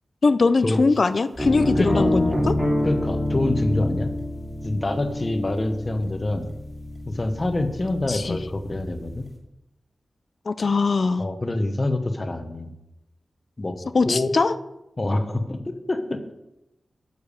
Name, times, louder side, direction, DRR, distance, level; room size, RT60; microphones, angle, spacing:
voice 1, 0.2-2.5 8.1-8.4 10.5-11.2 13.9-14.5, left 4 dB, 45° left, 13 dB, 0.5 m, -21 dB
sound 1, 1.4-9.3, left 1 dB, 5° right, 2.5 m, -27 dB
voice 2, 1.8-2.1 2.8-4.2 4.6-6.5 7.1-9.3 11.2-12.7 13.6-13.7 14.0-14.4 15.0-16.3, left 2 dB, 25° left, 7 dB, 1.0 m, -26 dB
10.0 x 6.8 x 6.8 m, 0.92 s
wide cardioid pair, 170°, 0 cm